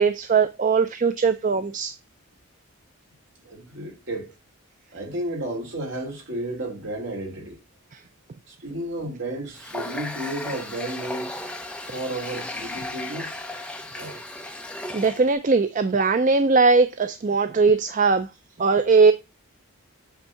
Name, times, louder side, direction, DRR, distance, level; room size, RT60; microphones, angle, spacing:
voice 1, 0.0-1.9 14.9-18.3 18.6-19.1, right 4 dB, 35° right, 0.4 m, -20 dB
voice 2, 3.4-4.3 4.9-7.6 8.5-11.3 11.9-13.4 13.9-14.2, right 1 dB, 55° right, 2.6 m, -32 dB
Water tap faucet, 9.6-15.3, left 1 dB, 5° left, 0.7 m, -35 dB
8.1 x 3.6 x 5.5 m
head